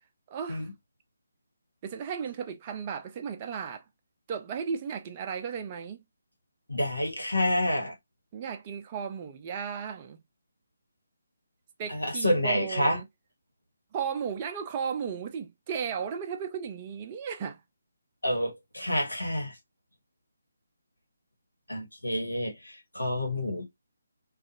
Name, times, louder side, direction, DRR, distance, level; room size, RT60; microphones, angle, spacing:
voice 1, 0.3-0.7 1.8-3.8 4.3-6.0 8.3-10.2 11.8-13.1 13.9-17.6, right 7 dB, 25° right, 0.4 m, -35 dB
voice 2, 6.7-7.9 11.9-13.0 18.2-19.6 21.7-23.6, left 1 dB, 85° left, 1.3 m, -28 dB
2.5 x 2.3 x 2.6 m
figure-of-eight pair, 145°, 0 cm